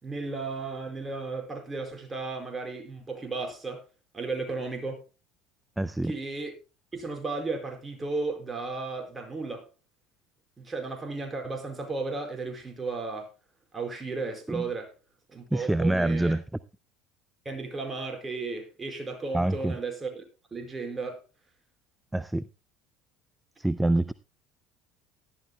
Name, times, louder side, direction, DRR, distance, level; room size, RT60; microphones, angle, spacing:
voice 1, 0.0-3.9 4.1-5.0 6.0-6.5 6.9-9.7 10.6-13.3 13.7-14.9 15.3-16.4 17.4-20.2 20.5-21.2, right 3 dB, 25° right, 4 dB, 4.7 m, -34 dB
voice 2, 5.8-6.1 14.5-14.7 15.5-16.4 19.3-19.8 22.1-22.5 23.6-24.1, right 1 dB, 10° right, 17 dB, 0.5 m, -26 dB
18.0 x 12.0 x 2.2 m, 0.30 s
hypercardioid pair, 70°, 0 cm